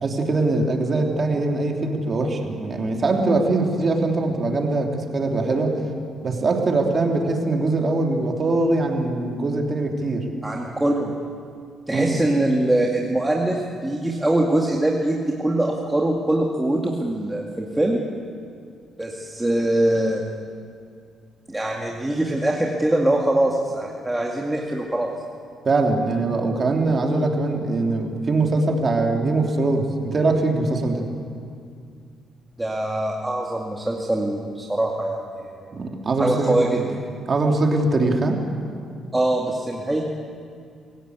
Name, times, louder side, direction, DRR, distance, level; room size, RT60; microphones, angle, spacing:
voice 1, 0.0-5.8 6.2-10.3 11.9-12.2 25.6-31.1 35.7-36.6 37.3-38.4, right 2 dB, 40° right, 2 dB, 3.2 m, -22 dB
voice 2, 10.4-11.1 11.9-18.0 19.0-20.2 21.5-25.1 32.6-35.7 36.2-36.9 39.1-40.0, right 1 dB, 10° right, -1 dB, 2.2 m, -23 dB
26.0 x 16.5 x 8.2 m, 2.3 s
cardioid pair, 90°, 0 cm